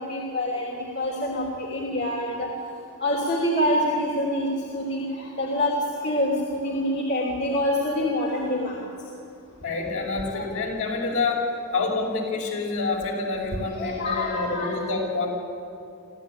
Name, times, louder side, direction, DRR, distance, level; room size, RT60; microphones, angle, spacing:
voice 1, 0.1-2.5 3.0-5.7 6.0-8.8 10.3-10.4 13.7-14.7, left 1 dB, 50° left, -3 dB, 3.1 m, -26 dB
voice 2, 9.6-15.3, left 3 dB, 65° left, 0 dB, 5.7 m, -27 dB
25.0 x 15.5 x 9.1 m, 2.7 s
head